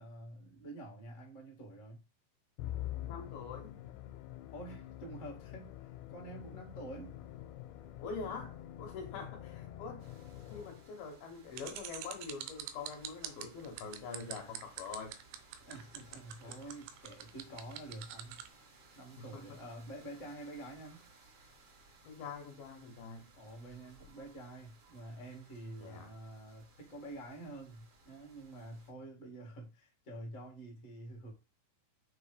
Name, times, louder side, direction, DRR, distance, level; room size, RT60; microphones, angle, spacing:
voice 1, 0.0-2.0 4.5-7.1 15.6-18.7 18.9-21.0 23.4-31.3, right 1 dB, 35° left, 1.2 m, -48 dB
Musical instrument, 2.6-11.1, left 13 dB, 85° left, 2.9 m, -46 dB
voice 2, 3.1-3.7 8.0-10.1 10.5-15.2 16.4-16.5 19.2-19.4 22.0-23.3 25.8-26.1, left 5 dB, 70° left, 2.7 m, -44 dB
sound 1, 10.0-28.9, right 3 dB, 50° right, 2.0 m, -62 dB
sound 2, 11.5-18.5, right 13 dB, 85° right, 2.9 m, -44 dB
6.4 x 3.3 x 5.0 m
omnidirectional pair, 5.0 m